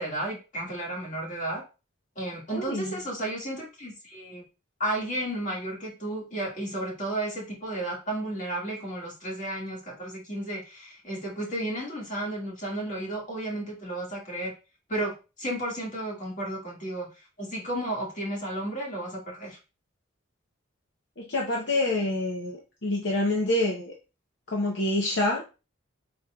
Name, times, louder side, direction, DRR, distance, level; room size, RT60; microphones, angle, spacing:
voice 1, 0.0-1.6 2.2-4.4 4.8-14.5 14.9-17.1 17.4-19.6, right 1 dB, 40° left, -3 dB, 2.0 m, -33 dB
voice 2, 2.5-2.9 21.2-23.9 24.5-25.4, left 1 dB, 60° left, -1 dB, 0.8 m, -27 dB
5.0 x 4.4 x 2.3 m, 0.30 s
head